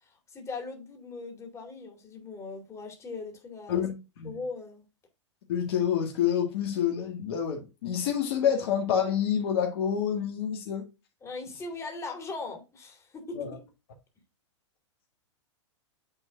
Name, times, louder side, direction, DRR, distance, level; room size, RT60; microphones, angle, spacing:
voice 1, 0.3-3.8 4.2-4.8 11.2-13.5, left 3 dB, 20° left, 2.5 m, -39 dB
voice 2, 3.7-4.4 5.5-10.9 13.3-13.6, left 8 dB, 55° left, 1.7 m, -28 dB
9.6 x 3.9 x 2.6 m
figure-of-eight pair, 105°, 15 cm